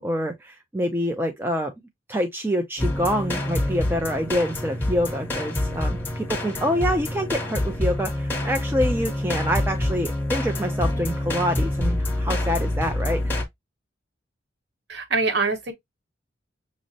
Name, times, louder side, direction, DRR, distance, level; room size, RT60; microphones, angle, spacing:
voice 1, 0.0-1.7 2.1-13.3, equal, 10° right, 0.4 m, -26 dB
sound 1, 2.8-13.4, left 1 dB, 10° left, 0.9 m, -26 dB
voice 2, 14.9-15.7, right 4 dB, 60° right, 0.9 m, -24 dB
6.1 x 2.0 x 2.6 m
head